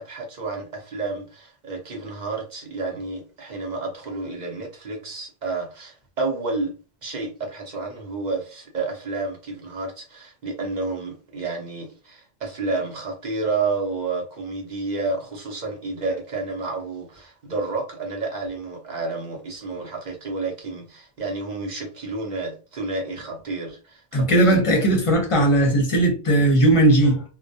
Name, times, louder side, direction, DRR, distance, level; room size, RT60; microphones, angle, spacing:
voice 1, 0.0-6.7 7.0-24.8, right 3 dB, 50° right, 0.7 m, -30 dB
voice 2, 24.1-27.2, right 1 dB, 35° left, 0.7 m, -18 dB
2.2 x 2.1 x 2.6 m
omnidirectional pair, 1.1 m